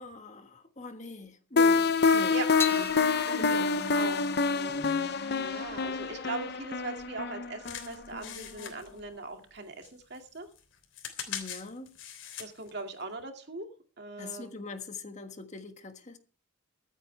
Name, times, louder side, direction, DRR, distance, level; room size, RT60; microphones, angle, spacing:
voice 1, 0.0-2.3 2.7-2.9 3.4-3.9 11.3-11.9 14.2-16.2, left 3 dB, 35° left, 1.5 m, -43 dB
sound 1, 1.6-8.3, left 4 dB, 55° left, 0.7 m, -27 dB
sound 2, 2.6-9.1, left 5 dB, 10° left, 1.0 m, -42 dB
voice 2, 3.0-3.4 3.9-10.5 12.4-13.7 14.0-14.6, right 2 dB, 55° right, 2.3 m, -40 dB
sound 3, 7.6-9.6 9.8-12.7 13.2-13.3, left 8 dB, 70° left, 3.2 m, -42 dB
23.5 x 9.1 x 3.4 m
head